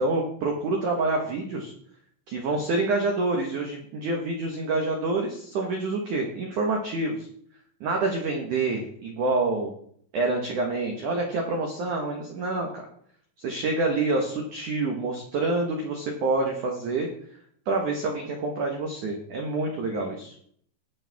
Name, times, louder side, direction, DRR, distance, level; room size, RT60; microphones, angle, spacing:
voice 1, 0.0-1.7 2.3-7.3 7.8-9.7 10.1-12.8 13.4-17.1 17.7-20.3, right 3 dB, 90° right, 1 dB, 1.7 m, -27 dB
19.5 x 6.6 x 3.5 m, 0.63 s
omnidirectional pair, 5.7 m